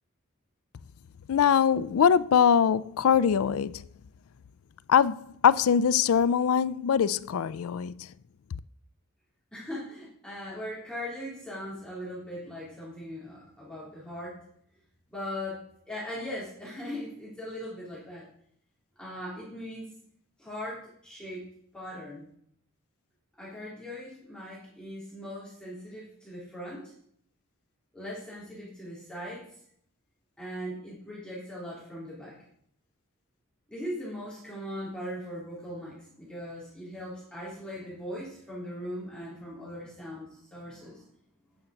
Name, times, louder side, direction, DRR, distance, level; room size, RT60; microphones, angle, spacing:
voice 1, 1.3-3.9 4.9-8.1, left 7 dB, 80° left, 0.4 m, -23 dB
voice 2, 9.5-14.5 15.1-18.3 19.0-20.0 20.4-21.5 21.7-22.2 23.4-26.9 27.9-29.5 30.4-32.5 33.7-41.1, equal, 5° left, 3.5 m, -39 dB
9.2 x 7.1 x 6.5 m
head